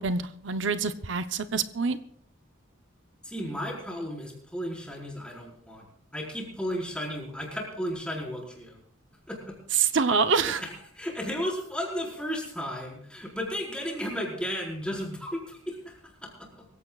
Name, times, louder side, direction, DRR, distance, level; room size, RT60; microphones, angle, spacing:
voice 1, 0.0-2.0 9.7-10.6, right 5 dB, 65° right, 11 dB, 0.8 m, -26 dB
voice 2, 3.2-5.9 6.1-8.8 9.3-9.6 10.6-15.9 16.2-16.7, equal, 5° left, -3 dB, 4.9 m, -34 dB
24.5 x 16.0 x 2.4 m, 0.62 s
head